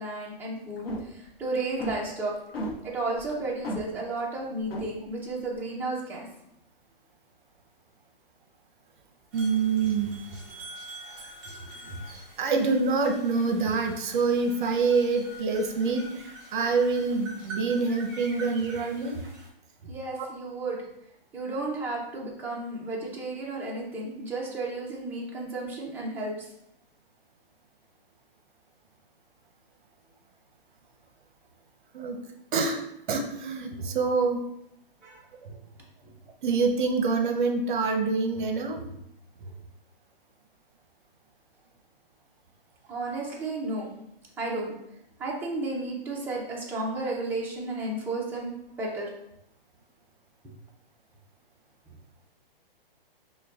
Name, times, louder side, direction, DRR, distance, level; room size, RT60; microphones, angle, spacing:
voice 1, 0.0-2.3 2.8-6.3 19.9-20.8 21.3-26.5 35.0-35.2 42.9-43.9 44.4-44.7 45.2-49.1, right 2 dB, 5° right, -4 dB, 0.5 m, -33 dB
sound 1, 0.8-1.3 1.5-2.0 2.5-2.8 3.2-3.4 3.6-3.8 4.3-4.4 4.7-4.8, equal, 90° left, 0.9 m, -32 dB
sound 2, 9.3-19.5, right 1 dB, 30° right, 1.0 m, -45 dB
voice 2, 9.3-10.2 11.2-19.2 20.2-20.3 31.9-32.2 32.5-32.8 33.1-34.4 35.4-35.6 36.4-38.8, right 4 dB, 60° right, 5 dB, 0.7 m, -26 dB
5.6 x 2.3 x 2.4 m, 0.80 s
hypercardioid pair, 140°, 29 cm